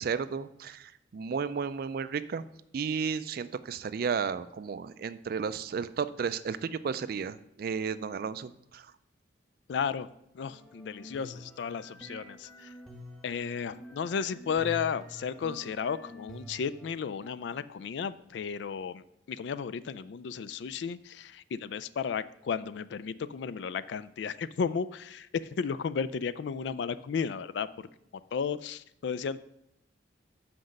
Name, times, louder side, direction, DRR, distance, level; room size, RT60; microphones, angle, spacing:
voice 1, 0.0-2.4 2.7-8.9, right 6 dB, 50° right, 14 dB, 0.3 m, -33 dB
voice 2, 9.7-10.1 10.3-12.7 13.2-19.0 19.3-27.9 28.3-29.4, left 6 dB, 65° left, 15 dB, 0.3 m, -34 dB
sound 1, 10.4-16.9, equal, ahead, 1.0 m, -47 dB
5.9 x 5.2 x 6.4 m, 0.79 s
head